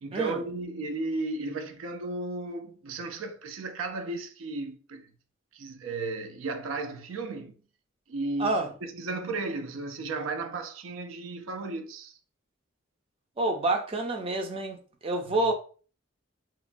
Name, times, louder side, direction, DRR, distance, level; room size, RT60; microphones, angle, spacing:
voice 1, 0.0-5.1 5.5-7.5 8.1-12.2 15.3-15.4, right 3 dB, 90° right, 0.4 m, -34 dB
voice 2, 13.4-14.8 15.0-15.5, right 2 dB, 30° right, 0.4 m, -27 dB
2.9 x 2.1 x 2.5 m
head